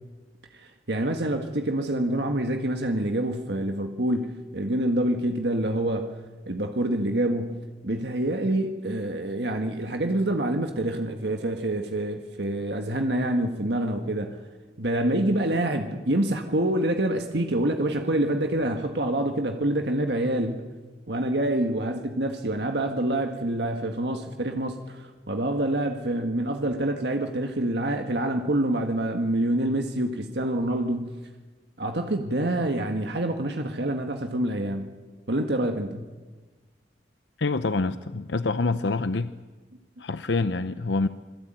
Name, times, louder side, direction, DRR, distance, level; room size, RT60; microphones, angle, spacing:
voice 1, 0.5-6.2 6.5-14.4 14.8-20.7 21.1-31.1 31.8-34.9 35.3-36.1, right 1 dB, 70° right, 1.7 m, -26 dB
voice 2, 37.4-39.3 40.0-41.1, left 3 dB, 85° left, 0.8 m, -26 dB
27.5 x 21.5 x 9.1 m
head